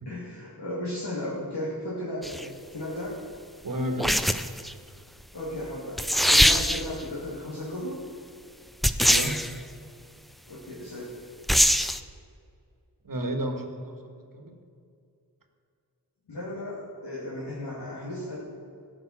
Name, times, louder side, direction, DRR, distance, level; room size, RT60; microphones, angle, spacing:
voice 1, 0.1-3.2 5.3-8.0 10.5-11.2 16.3-18.4, left 1 dB, 85° left, -8 dB, 2.5 m, -35 dB
sound 1, 2.2-2.5 4.0-4.7 5.7-5.8 6.0-7.0 8.8-9.5 11.5-12.0, equal, ahead, 0.4 m, -22 dB
voice 2, 3.6-4.2 9.0-9.4 13.0-14.0 14.3-14.6, right 1 dB, 55° right, 5 dB, 1.5 m, -31 dB
13.5 x 6.0 x 7.3 m, 2.4 s
wide cardioid pair, 55°, 40 cm